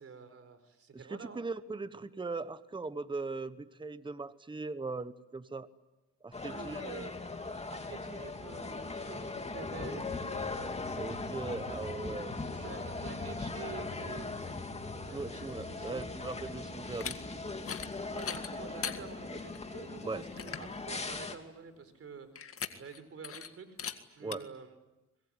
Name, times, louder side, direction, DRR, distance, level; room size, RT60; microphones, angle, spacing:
voice 1, 0.0-1.4 6.4-7.1 7.7-10.5 12.3-14.7 15.1-16.1 18.1-23.8 24.2-24.7, right 5 dB, 50° right, 11 dB, 4.2 m, -48 dB
voice 2, 0.9-5.7 6.2-6.8 11.0-12.4 15.1-17.4 20.0-20.2 24.2-24.4, right 3 dB, 15° right, 13 dB, 1.1 m, -39 dB
sound 1, 6.3-21.4, left 3 dB, 20° left, 2.5 m, -39 dB
sound 2, 16.9-17.2 17.6-17.9 18.2-19.0 19.5-19.6 20.0-20.1 20.4-20.7 22.4-23.0 23.2-23.5 23.8-24.0 24.3-24.4, left 7 dB, 45° left, 2.0 m, -39 dB
24.5 x 22.5 x 9.9 m, 1.0 s
cardioid pair, 90°, 30 cm